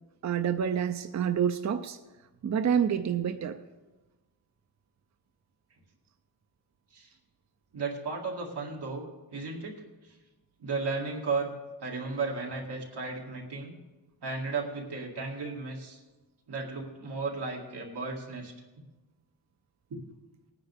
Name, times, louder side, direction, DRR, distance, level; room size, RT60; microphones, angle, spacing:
voice 1, 0.2-2.0 2.4-3.6, right 8 dB, 45° right, 8 dB, 0.5 m, -28 dB
voice 2, 7.7-9.1 9.3-9.7 10.6-11.5 11.8-13.8 14.2-16.0 16.5-18.5 19.9-20.0, right 4 dB, 90° right, -2 dB, 2.2 m, -34 dB
19.0 x 9.6 x 3.5 m, 1.2 s
wide cardioid pair, 120°, 39 cm